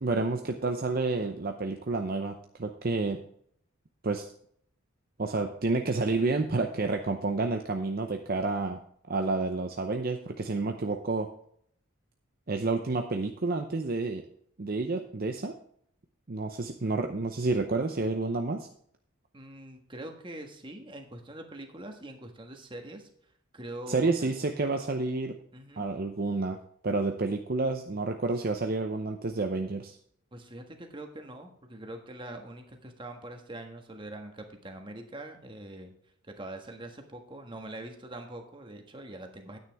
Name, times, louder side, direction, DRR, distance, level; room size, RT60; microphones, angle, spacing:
voice 1, 0.0-3.2 4.0-4.2 5.2-8.8 9.1-11.3 12.5-14.2 14.6-15.5 16.3-18.7 23.9-25.4 25.8-26.6 26.8-30.0, right 3 dB, 45° right, 5 dB, 0.7 m, -29 dB
voice 2, 19.3-23.1 23.5-24.4 25.5-25.8 30.3-35.9 36.2-39.6, right 1 dB, 25° right, 4 dB, 1.5 m, -43 dB
9.6 x 9.4 x 3.5 m, 0.65 s
head